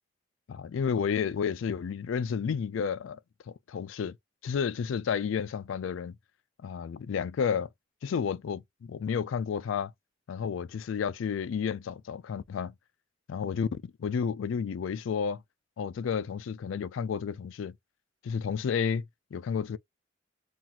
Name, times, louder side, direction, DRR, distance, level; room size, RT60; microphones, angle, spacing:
voice 1, 0.5-3.2 3.5-4.2 4.4-6.2 6.6-7.7 8.0-9.9 10.3-12.7 13.3-15.4 15.8-17.8 18.2-19.0 19.3-19.8, left 6 dB, 80° left, 0.3 m, -31 dB
5.7 x 2.4 x 2.8 m
head